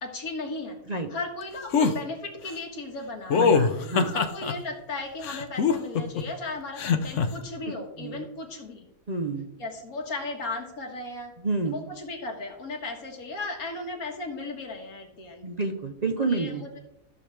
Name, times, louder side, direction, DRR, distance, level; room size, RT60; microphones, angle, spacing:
voice 1, 0.0-0.8 1.1-3.6 4.1-8.9 9.6-11.3 11.7-15.4 16.2-16.8, left 2 dB, 85° left, 2 dB, 2.1 m, -36 dB
sound 1, 1.7-2.0 3.3-4.5 5.2-6.2 6.8-7.3, left 6 dB, 60° left, 1.0 m, -22 dB
voice 2, 3.3-4.1 8.0-8.2 9.1-9.5 11.4-11.7 15.4-16.7, right 3 dB, 40° right, 4 dB, 0.7 m, -29 dB
14.0 x 7.1 x 3.4 m, 0.85 s
omnidirectional pair, 1.5 m